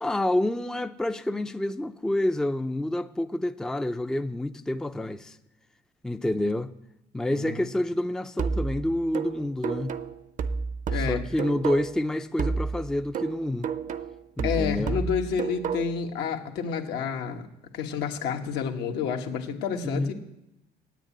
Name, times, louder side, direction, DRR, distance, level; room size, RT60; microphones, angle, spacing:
voice 1, 0.0-5.4 6.0-6.7 7.1-10.0 10.9-13.7 14.4-15.0 19.8-20.1, left 1 dB, 5° left, 0.4 m, -28 dB
voice 2, 7.3-7.6 10.9-11.2 14.4-17.4 17.7-20.1, left 7 dB, 80° left, 1.6 m, -29 dB
sound 1, 8.4-12.1 12.4-16.1, right 5 dB, 50° right, 0.7 m, -31 dB
9.2 x 9.2 x 8.7 m
cardioid pair, 110°, 17 cm